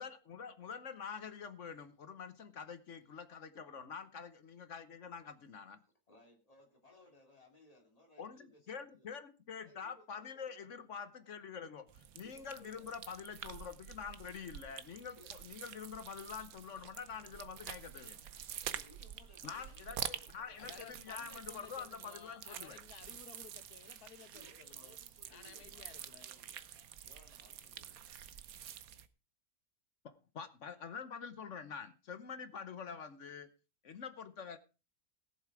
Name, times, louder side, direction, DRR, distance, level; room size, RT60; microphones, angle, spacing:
voice 1, 0.0-5.8 8.2-18.2 19.4-22.8 30.0-33.5 33.8-34.6, left 6 dB, 55° left, 1.2 m, -46 dB
voice 2, 6.1-9.2 9.6-10.5 12.2-13.0 15.2-15.3 18.7-21.1 24.3-28.2, left 1 dB, 25° left, 2.9 m, -64 dB
sound 1, 11.9-29.1, right 9 dB, 70° right, 1.2 m, -48 dB
voice 3, 20.6-25.0 25.3-26.3, left 9 dB, 90° left, 1.5 m, -56 dB
17.5 x 7.5 x 4.8 m
omnidirectional pair, 1.6 m